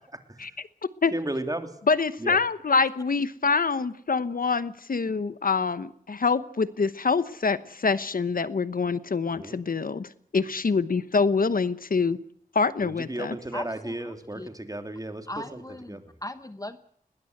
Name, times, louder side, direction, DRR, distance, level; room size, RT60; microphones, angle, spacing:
voice 1, 1.1-1.7 2.2-2.4 9.3-9.6 12.8-16.1, right 1 dB, 25° right, 7 dB, 3.0 m, -35 dB
voice 2, 1.9-10.1 10.3-12.2 12.5-13.3, left 4 dB, 75° left, 14 dB, 1.0 m, -25 dB
voice 3, 13.5-14.5 15.3-16.8, left 1 dB, 25° left, 11 dB, 1.0 m, -38 dB
21.0 x 19.5 x 8.0 m, 0.63 s
wide cardioid pair, 80°, 15 cm